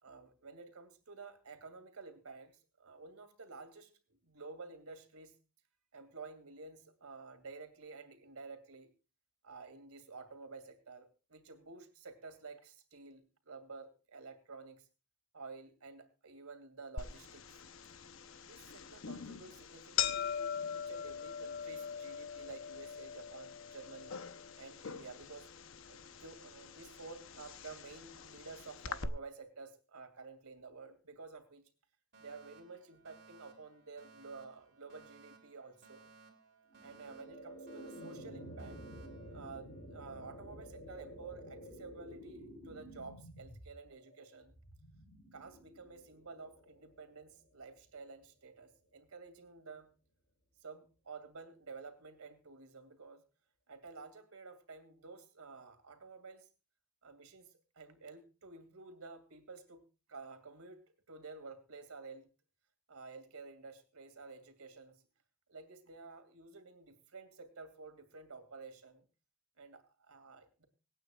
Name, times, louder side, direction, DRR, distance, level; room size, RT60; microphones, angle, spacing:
voice 1, 0.0-3.9 4.2-5.3 5.9-8.9 9.4-14.9 15.3-17.6 18.4-24.2 24.6-25.5 25.9-31.7 32.2-36.1 36.8-38.8 39.3-44.6 45.3-49.9 50.6-53.2 53.7-56.5 57.0-59.8 60.1-60.8 61.1-62.3 62.9-65.0 65.5-69.0 69.6-70.6, right 4 dB, 90° right, 8 dB, 2.5 m, -51 dB
sound 1, 17.0-29.1, left 7 dB, 65° left, 0.8 m, -42 dB
Alarm, 32.1-40.1, right 4 dB, 50° right, 3.2 m, -61 dB
sound 2, 36.7-47.8, equal, 40° left, 5.2 m, -51 dB
25.5 x 9.1 x 2.4 m, 0.33 s
head